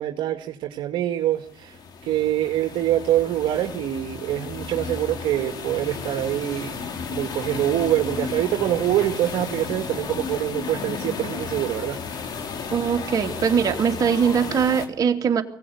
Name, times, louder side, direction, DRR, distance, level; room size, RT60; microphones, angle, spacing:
voice 1, 0.0-1.8 2.0-6.7 7.1-12.0, right 12 dB, 60° right, 4 dB, 2.0 m, -25 dB
sound 1, 1.5-14.9, left 5 dB, 45° left, 3.5 m, -33 dB
voice 2, 12.7-15.4, right 7 dB, 40° right, 4 dB, 2.8 m, -21 dB
23.0 x 17.5 x 9.6 m, 0.64 s
supercardioid pair, 95°, 9 cm